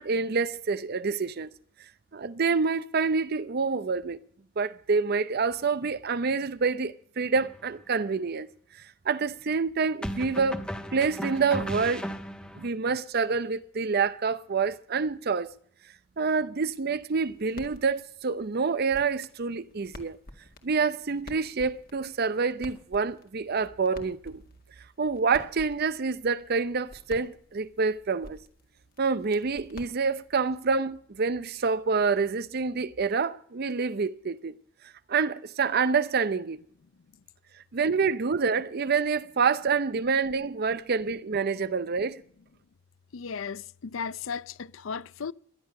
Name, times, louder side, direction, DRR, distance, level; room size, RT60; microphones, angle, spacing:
voice 1, 0.0-1.5 2.1-4.2 4.6-8.5 9.1-10.6 10.9-12.1 12.6-15.5 16.2-20.2 20.6-24.4 25.0-28.4 29.0-34.5 35.1-36.6 37.7-42.2, right 5 dB, 50° right, 0.6 m, -27 dB
sound 1, 7.4-7.6 10.0-12.7, equal, 5° left, 1.2 m, -35 dB
sound 2, 17.1-30.6, left 1 dB, 50° left, 2.0 m, -50 dB
voice 2, 43.1-45.3, left 6 dB, 80° left, 0.5 m, -35 dB
18.5 x 11.0 x 6.5 m
head